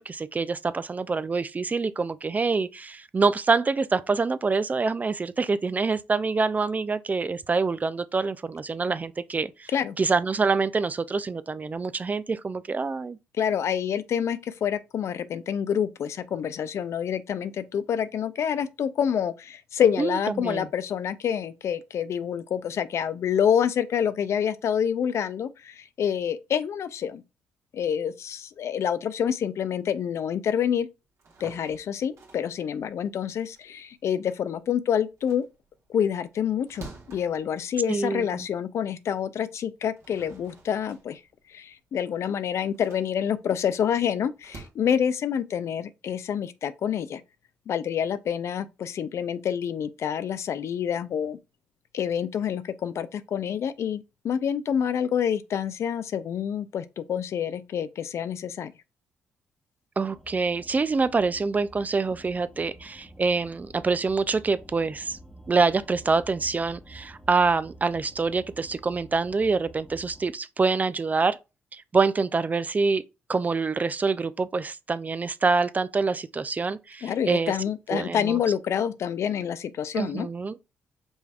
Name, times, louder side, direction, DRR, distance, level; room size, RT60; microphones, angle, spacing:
voice 1, 0.0-9.7 10.0-13.2 20.0-20.7 37.9-38.4 60.0-65.2 65.5-71.4 71.7-73.0 73.3-77.5 77.9-78.4 79.9-80.6, right 4 dB, 30° right, 0.4 m, -26 dB
voice 2, 13.4-27.2 27.7-30.9 31.4-35.5 35.9-41.2 41.5-47.2 47.7-51.4 51.9-58.7 77.0-80.3, left 8 dB, 60° left, 0.4 m, -27 dB
sound 1, 31.1-34.7 35.0-38.6 39.0-39.1 39.7-44.7, right 3 dB, 65° right, 1.5 m, -49 dB
sound 2, 60.1-70.3, right 1 dB, 5° left, 0.8 m, -49 dB
5.3 x 3.3 x 2.3 m
supercardioid pair, 50°, 5 cm